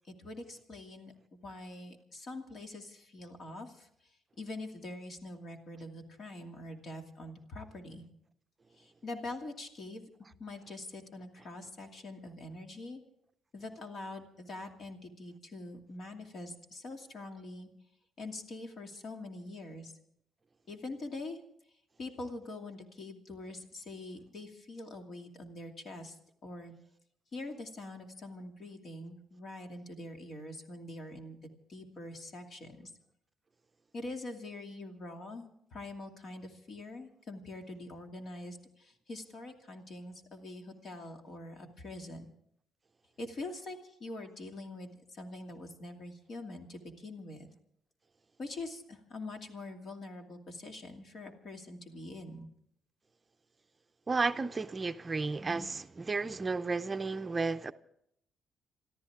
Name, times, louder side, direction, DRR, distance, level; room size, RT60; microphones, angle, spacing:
voice 1, 0.1-3.9 4.4-8.1 8.8-10.1 10.4-13.0 13.5-17.7 18.2-19.9 20.7-21.4 22.0-26.7 27.3-31.4 31.7-32.9 33.9-42.3 43.2-47.5 48.4-52.5, left 2 dB, 55° left, 2.5 m, -44 dB
voice 2, 54.1-57.7, right 4 dB, 25° right, 0.6 m, -33 dB
27.5 x 13.5 x 3.6 m
cardioid pair, 90°, 0 cm